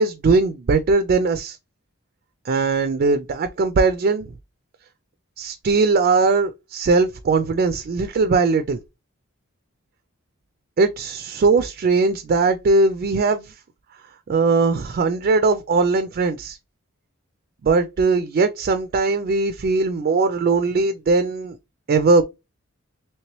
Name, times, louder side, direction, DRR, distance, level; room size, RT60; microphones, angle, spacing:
voice 1, 0.0-1.6 2.5-4.3 5.4-8.8 10.8-13.5 14.3-16.6 17.6-21.6 21.9-22.2, right 3 dB, 45° right, 0.3 m, -19 dB
3.2 x 2.9 x 3.0 m
head